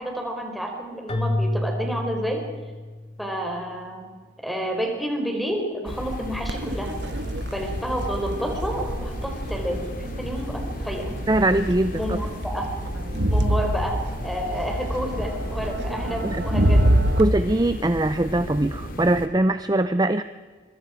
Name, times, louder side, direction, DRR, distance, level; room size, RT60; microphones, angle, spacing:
voice 1, 0.0-2.5 3.2-4.0 4.4-7.0 7.5-11.1 12.0-12.7 13.3-17.0, equal, ahead, 2 dB, 4.2 m, -30 dB
Keyboard (musical), 1.1-3.3, left 1 dB, 30° left, 1.7 m, -28 dB
sound 1, 5.8-19.3, left 1 dB, 50° left, 2.5 m, -34 dB
Crowd, 6.5-17.2, right 1 dB, 65° right, 1.3 m, -26 dB
voice 2, 11.3-12.2 16.2-16.4 17.2-20.2, right 1 dB, 20° right, 11 dB, 0.6 m, -22 dB
25.0 x 23.5 x 5.1 m, 1.4 s
head